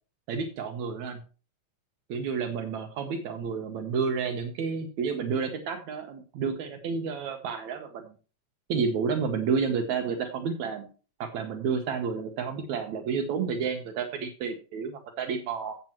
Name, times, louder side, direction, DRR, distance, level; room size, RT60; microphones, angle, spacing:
voice 1, 0.3-1.2 2.1-8.1 8.7-10.9 11.2-15.7, right 5 dB, 75° right, 5 dB, 2.3 m, -30 dB
15.0 x 7.5 x 3.0 m, 0.36 s
omnidirectional pair, 3.4 m